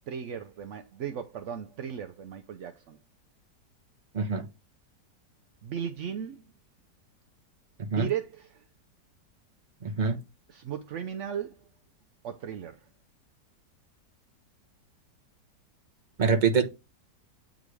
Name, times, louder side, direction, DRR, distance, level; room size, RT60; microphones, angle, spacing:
voice 1, 0.1-3.0 5.6-6.4 7.8-8.6 10.5-11.6 12.2-12.8, right 8 dB, 75° right, 0.7 m, -36 dB
voice 2, 9.8-10.2 16.2-16.6, right 5 dB, 35° right, 0.9 m, -24 dB
8.3 x 3.8 x 3.2 m
omnidirectional pair, 1.9 m